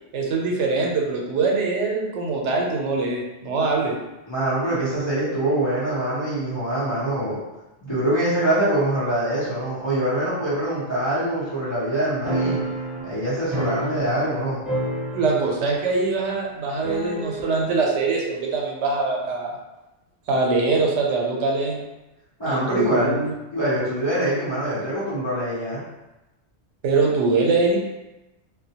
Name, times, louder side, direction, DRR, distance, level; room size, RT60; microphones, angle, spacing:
voice 1, 0.1-3.9 15.1-19.5 20.3-21.8 22.5-23.3 26.8-27.8, right 3 dB, 90° right, -1 dB, 0.9 m, -23 dB
voice 2, 4.3-7.4 7.8-12.6 13.0-14.7 22.4-23.2 23.5-25.8, right 1 dB, 30° left, -10 dB, 0.6 m, -24 dB
sound 1, 12.2-14.4 14.6-15.7 15.9-16.0 16.8-17.6, right 1 dB, ahead, 0.9 m, -29 dB
2.2 x 2.1 x 2.7 m, 1.0 s
omnidirectional pair, 1.2 m